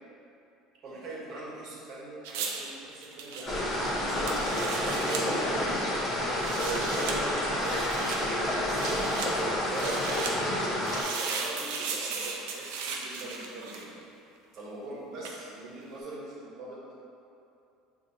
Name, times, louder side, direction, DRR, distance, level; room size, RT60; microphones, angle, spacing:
voice 1, 0.8-4.4 4.8-5.8 6.6-14.0 14.6-16.8, right 2 dB, 50° right, -5 dB, 1.1 m, -40 dB
sound 1, 2.2-5.3 6.3-7.2 7.6-8.2 8.7-9.3 9.7-10.3 10.8-14.0 15.2-15.4, right 5 dB, 85° right, 0.5 m, -36 dB
sound 2, 3.5-11.0, left 1 dB, 30° left, 1.1 m, -29 dB
5.9 x 2.6 x 2.7 m, 2.7 s
supercardioid pair, 115°, 0 cm